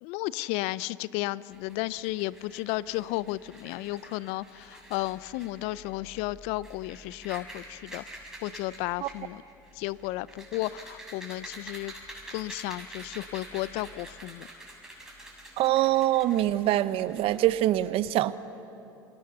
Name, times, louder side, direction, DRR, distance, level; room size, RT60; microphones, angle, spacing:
voice 1, 0.0-8.0 8.4-9.4 9.8-11.9 12.3-14.5, left 18 dB, 65° left, 20 dB, 0.6 m, -33 dB
sound 1, 1.5-17.8, right 1 dB, 5° right, 7.1 m, -47 dB
voice 2, 15.6-18.3, right 14 dB, 55° right, 15 dB, 1.0 m, -24 dB
28.5 x 25.0 x 6.9 m, 2.8 s
hypercardioid pair, 80°, 12 cm